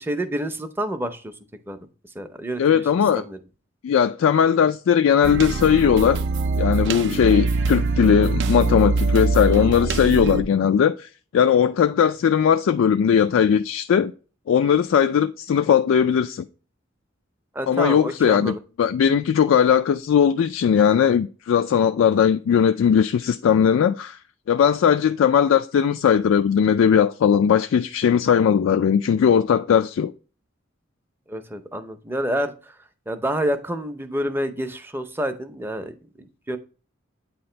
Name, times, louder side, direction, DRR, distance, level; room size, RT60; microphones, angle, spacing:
voice 1, 0.0-1.3 1.7-1.8 2.1-2.8 3.2-3.4 17.5-18.6 31.3-32.7 33.1-36.6, right 1 dB, 10° right, 0.5 m, -28 dB
voice 2, 2.6-3.2 3.8-6.2 6.6-14.1 14.5-16.4 17.7-24.2 24.5-30.1, left 8 dB, 75° left, 0.3 m, -19 dB
sound 1, 5.2-10.4, right 3 dB, 60° right, 0.4 m, -23 dB
8.5 x 2.9 x 4.3 m
head